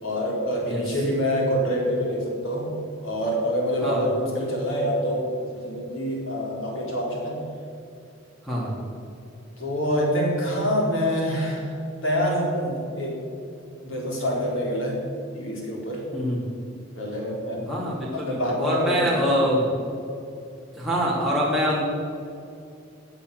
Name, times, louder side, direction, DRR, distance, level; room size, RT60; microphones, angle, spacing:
voice 1, 0.0-7.4 9.6-11.8 12.0-13.2 13.8-15.0 15.3-16.1 16.9-17.6 18.1-19.5, equal, 80° left, -2 dB, 4.1 m, -26 dB
voice 2, 17.7-19.7 20.8-21.8, equal, ahead, -7 dB, 2.7 m, -24 dB
16.0 x 8.9 x 6.8 m, 2.6 s
head